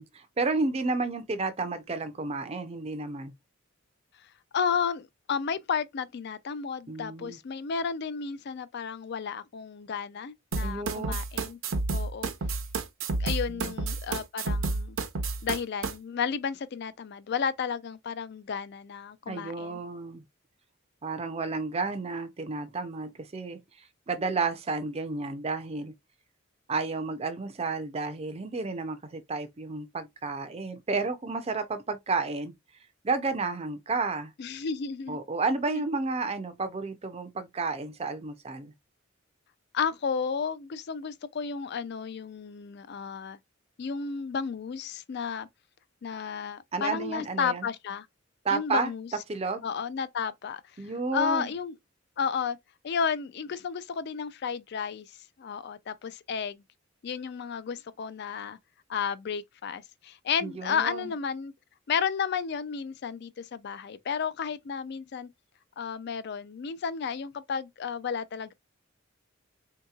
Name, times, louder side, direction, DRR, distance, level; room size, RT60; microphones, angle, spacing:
voice 1, 0.0-3.3 6.9-7.4 10.6-11.1 13.5-13.8 19.3-20.2 21.0-25.9 26.7-32.5 33.0-34.3 35.1-38.7 46.7-47.7 48.4-48.9 49.3-49.6 50.8-51.5 60.4-61.1, right 3 dB, 30° right, 0.5 m, -31 dB
voice 2, 4.5-11.6 11.9-12.3 13.2-15.0 15.4-19.8 34.4-35.2 35.7-35.8 39.7-43.4 43.8-45.5 46.0-48.1 48.5-49.1 49.6-50.6 51.1-51.7 52.2-52.6 52.8-56.6 57.0-58.6 58.9-61.5 61.9-65.3 65.8-68.5, left 6 dB, 55° left, 0.4 m, -32 dB
sound 1, 10.5-15.9, right 3 dB, 75° right, 0.7 m, -30 dB
3.6 x 2.8 x 2.3 m
head